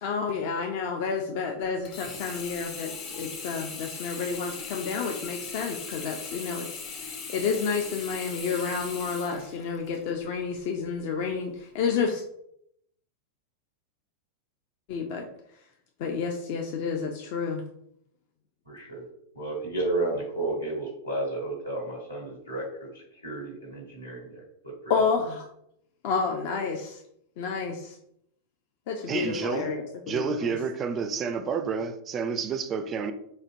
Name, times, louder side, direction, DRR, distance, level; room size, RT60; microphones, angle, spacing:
voice 1, 0.0-12.2 14.9-15.3 16.0-17.6 24.9-25.4 26.0-27.0 27.4-28.0 28.9-30.6, left 5 dB, 50° left, 0.4 m, -30 dB
Sink (filling or washing), 1.8-10.1 10.6-10.7, left 5 dB, 35° left, 0.8 m, -39 dB
voice 2, 18.7-19.0 19.3-25.0, right 2 dB, 85° left, 1.4 m, -32 dB
voice 3, 29.1-29.7 30.1-33.1, right 5 dB, 25° right, 0.3 m, -29 dB
4.2 x 2.7 x 2.5 m
figure-of-eight pair, 90°, 0 cm